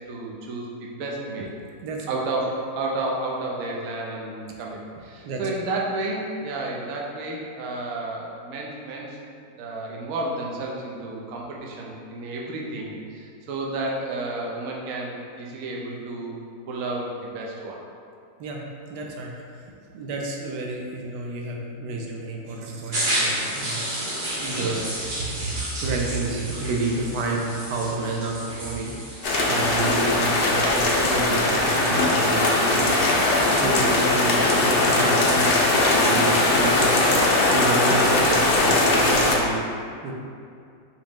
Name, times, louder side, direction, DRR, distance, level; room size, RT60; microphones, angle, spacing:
voice 1, 0.0-1.5 2.1-9.2 9.6-16.4 16.7-17.8, right 2 dB, 65° right, -2 dB, 1.0 m, -31 dB
voice 2, 1.8-2.2 5.2-5.6 18.4-24.0 24.3-29.2 29.5-33.1 33.4-35.7 36.0-37.1 37.5-39.7 40.0-40.1, right 3 dB, 85° right, 0 dB, 1.2 m, -30 dB
sound 1, 22.9-30.4, right 1 dB, 40° right, 0.9 m, -31 dB
sound 2, 29.2-39.4, left 2 dB, 65° left, 0.5 m, -20 dB
4.9 x 3.0 x 3.5 m, 2.3 s
omnidirectional pair, 1.7 m